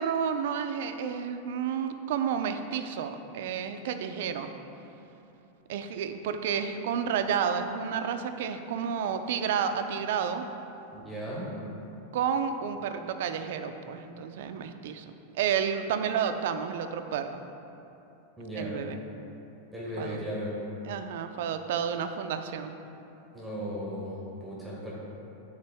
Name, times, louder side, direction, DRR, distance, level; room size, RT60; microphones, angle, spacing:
voice 1, 0.0-4.5 5.7-10.5 12.1-17.4 18.5-19.0 20.0-20.2 20.8-22.7, right 7 dB, 65° right, 8 dB, 0.4 m, -31 dB
voice 2, 10.9-11.6 18.4-18.8 19.7-20.5 23.3-24.9, equal, ahead, -7 dB, 1.0 m, -36 dB
9.5 x 4.0 x 3.5 m, 2.9 s
supercardioid pair, 160°, 0 cm